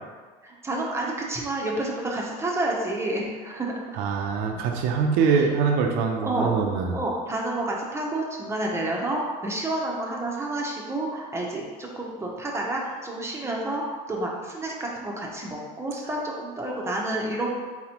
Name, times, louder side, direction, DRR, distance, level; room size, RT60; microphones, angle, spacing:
voice 1, 0.4-3.8 5.2-5.5 6.2-6.6 6.9-17.5, right 1 dB, 15° right, -2 dB, 0.8 m, -29 dB
voice 2, 4.0-7.0, right 5 dB, 75° right, 2 dB, 0.6 m, -23 dB
4.1 x 4.0 x 2.9 m, 1.5 s
supercardioid pair, 100°, 16 cm